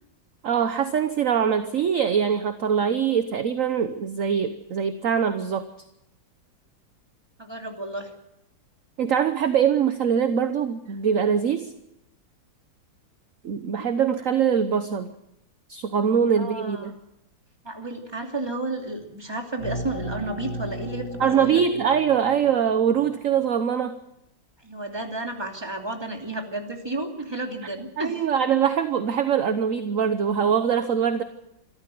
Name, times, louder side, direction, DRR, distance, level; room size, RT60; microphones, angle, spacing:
voice 1, 0.4-5.7 9.0-11.7 13.4-15.1 15.7-17.0 21.2-24.0 28.0-31.2, right 7 dB, 50° right, 9 dB, 1.1 m, -23 dB
voice 2, 7.4-8.1 16.4-16.9 17.6-21.6 24.6-28.2, right 2 dB, 10° right, 2 dB, 2.7 m, -32 dB
sound 1, 19.6-23.1, equal, 60° left, 6.8 m, -36 dB
26.5 x 13.5 x 7.7 m, 0.86 s
omnidirectional pair, 2.1 m